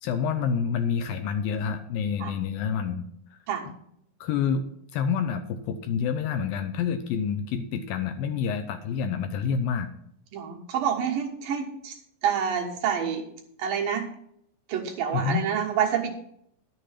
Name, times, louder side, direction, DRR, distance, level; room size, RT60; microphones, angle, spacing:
voice 1, 0.0-3.1 4.2-4.6 4.9-9.9 15.1-15.4, left 7 dB, 80° left, 9 dB, 2.2 m, -28 dB
voice 2, 10.3-12.0 12.2-13.3 13.6-14.0 14.7-16.1, right 8 dB, 65° right, 0 dB, 2.9 m, -27 dB
11.5 x 6.8 x 5.7 m, 0.72 s
omnidirectional pair, 4.6 m